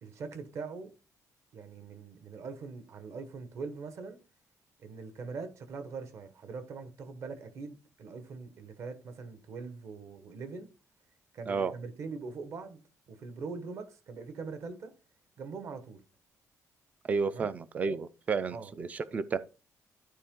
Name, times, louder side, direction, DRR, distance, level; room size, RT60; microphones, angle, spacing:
voice 1, 0.0-0.9 1.5-4.2 4.8-10.7 11.3-12.8 13.1-14.9 15.4-16.0 17.3-17.5 18.5-18.7, right 4 dB, 50° right, 1.2 m, -42 dB
voice 2, 17.1-19.4, right 5 dB, 25° right, 0.4 m, -31 dB
12.0 x 4.5 x 3.7 m
cardioid pair, 175°, 6 cm